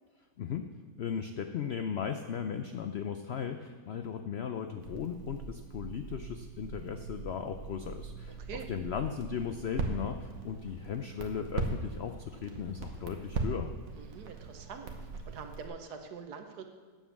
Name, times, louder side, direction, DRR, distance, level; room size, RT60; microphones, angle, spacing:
voice 1, 0.4-0.7 1.0-8.4 8.7-13.7, left 7 dB, 80° left, 8 dB, 0.5 m, -37 dB
Crackle, 4.8-15.7, right 4 dB, 60° right, 1.6 m, -40 dB
voice 2, 8.3-8.7 14.0-14.9 15.3-16.6, right 6 dB, 80° right, 6 dB, 1.6 m, -44 dB
9.2 x 7.2 x 7.1 m, 1.5 s
omnidirectional pair, 1.7 m